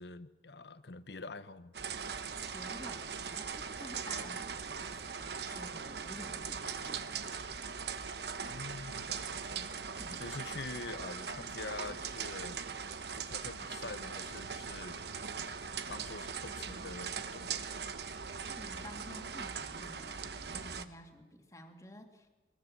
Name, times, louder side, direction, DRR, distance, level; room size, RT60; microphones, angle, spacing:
voice 1, 0.0-1.7 8.5-9.7 10.1-12.6 13.2-15.0 15.3-15.5 15.9-17.7, left 3 dB, 70° left, 1.0 m, -45 dB
sound 1, 1.7-20.9, right 6 dB, 70° right, 1.1 m, -40 dB
voice 2, 2.5-7.2 10.0-10.2 18.5-22.3, left 1 dB, 20° left, 2.2 m, -51 dB
22.0 x 21.5 x 7.4 m
head